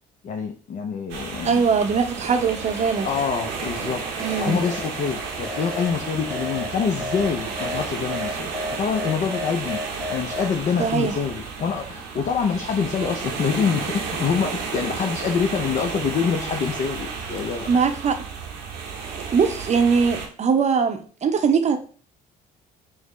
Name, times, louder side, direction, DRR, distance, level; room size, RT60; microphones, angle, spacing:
voice 1, 0.2-1.6 3.0-4.0 4.4-8.5 8.8-17.7, left 6 dB, 45° left, 4 dB, 0.5 m, -26 dB
sound 1, 1.1-20.3, right 5 dB, 75° right, 0.7 m, -32 dB
voice 2, 1.4-3.1 4.2-4.6 10.8-11.2 17.7-18.2 19.3-21.8, right 5 dB, 40° right, 7 dB, 0.6 m, -21 dB
sound 2, 1.5-10.6, left 1 dB, 5° left, 0.9 m, -35 dB
4.7 x 2.0 x 3.1 m, 0.42 s
hypercardioid pair, 55°, 19 cm